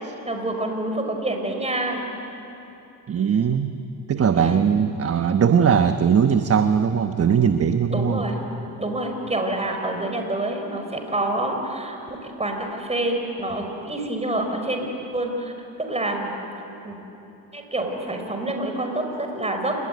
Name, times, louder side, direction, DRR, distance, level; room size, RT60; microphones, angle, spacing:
voice 1, 0.3-2.0 4.3-4.6 7.9-8.3 8.8-14.9 15.1-15.5 15.9-16.3 16.8-17.0 17.5-19.8, right 1 dB, 15° right, 3 dB, 5.8 m, -27 dB
voice 2, 3.1-3.7 4.1-8.2, right 7 dB, 35° right, 8 dB, 1.2 m, -20 dB
28.0 x 21.0 x 9.6 m, 3.0 s
supercardioid pair, 80°, 41 cm